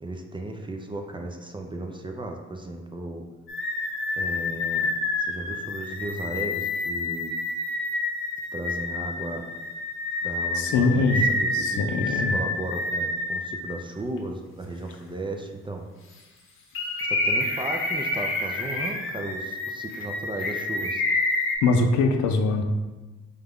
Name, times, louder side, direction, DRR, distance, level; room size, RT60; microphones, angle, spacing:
voice 1, 0.0-3.2 4.2-4.9 5.2-7.3 8.5-9.4 10.2-15.9 17.0-21.0, right 2 dB, 15° right, 3 dB, 0.4 m, -35 dB
sound 1, 3.5-13.6 14.2-14.3 16.7-21.6, left 2 dB, 45° left, 0.8 m, -28 dB
voice 2, 10.5-11.2 11.5-12.4 21.6-22.6, left 3 dB, 75° left, 5 dB, 0.5 m, -22 dB
4.9 x 2.2 x 3.5 m, 1.2 s
cardioid pair, 90°, 30 cm